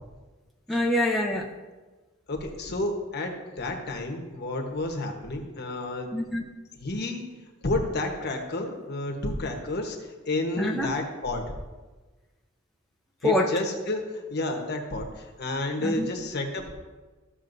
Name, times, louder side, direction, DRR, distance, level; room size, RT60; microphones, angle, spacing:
voice 1, 0.7-1.5 6.1-6.4 10.6-10.9 13.2-13.5 15.8-16.1, left 1 dB, ahead, 0 dB, 0.6 m, -25 dB
voice 2, 2.3-6.1 6.8-7.2 7.6-10.0 10.3-11.5 13.2-16.7, left 2 dB, 50° left, 3 dB, 1.1 m, -30 dB
13.5 x 6.6 x 2.6 m, 1.2 s
head